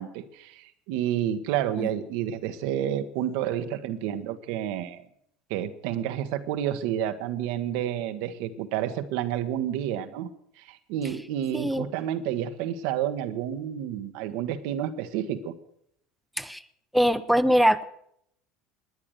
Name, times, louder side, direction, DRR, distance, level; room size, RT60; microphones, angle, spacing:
voice 1, 0.0-5.0 5.5-10.3 10.6-15.5, right 10 dB, 70° right, 8 dB, 1.3 m, -30 dB
voice 2, 11.5-11.9 16.4-16.6 16.9-17.8, equal, ahead, 8 dB, 0.9 m, -22 dB
20.0 x 9.8 x 6.7 m, 0.71 s
hypercardioid pair, 80°, 0 cm